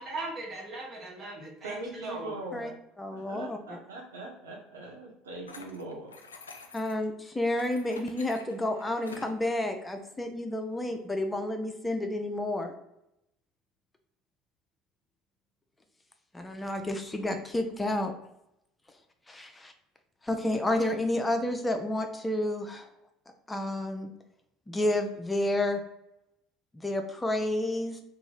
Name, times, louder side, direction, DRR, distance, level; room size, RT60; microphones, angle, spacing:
voice 1, 0.0-2.4, right 2 dB, 35° right, -2 dB, 1.3 m, -39 dB
voice 2, 1.6-2.7 3.1-6.2, right 2 dB, 85° right, -1 dB, 0.7 m, -41 dB
voice 3, 3.0-3.8 6.7-12.7 16.3-18.1 19.3-19.7 20.2-22.9 23.5-24.1 24.7-25.8 26.7-28.0, left 1 dB, 15° left, 5 dB, 0.5 m, -30 dB
sound 1, 5.5-7.1 7.6-9.4, left 4 dB, 90° left, 0.3 m, -48 dB
2.9 x 2.5 x 3.8 m, 0.83 s
hypercardioid pair, 65°, 0 cm